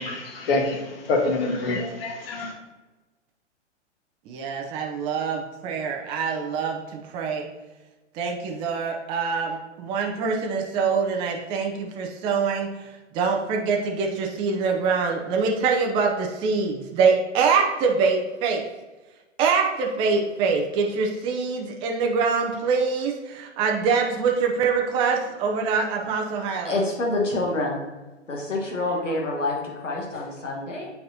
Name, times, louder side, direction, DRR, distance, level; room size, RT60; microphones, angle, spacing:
voice 1, 0.0-2.5, left 2 dB, 50° left, 2 dB, 1.5 m, -26 dB
voice 2, 4.3-7.5 8.2-12.7 13.1-18.6 19.4-26.7, right 5 dB, 15° right, 1 dB, 0.4 m, -24 dB
voice 3, 26.6-27.8 28.3-30.9, left 2 dB, 85° left, -1 dB, 1.5 m, -27 dB
8.8 x 4.2 x 2.8 m, 1.2 s
figure-of-eight pair, 115°, 36 cm